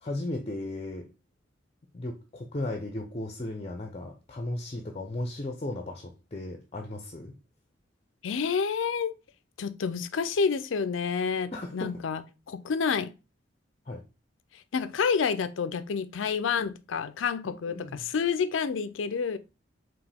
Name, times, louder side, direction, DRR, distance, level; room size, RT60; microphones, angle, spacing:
voice 1, 0.0-1.1 1.9-7.3 11.5-12.0 13.9-14.0 17.4-18.0, left 2 dB, 35° left, 0.6 m, -36 dB
voice 2, 8.2-9.1 9.6-13.1 14.5-19.4, left 6 dB, 90° left, 0.5 m, -29 dB
4.9 x 3.1 x 3.4 m
head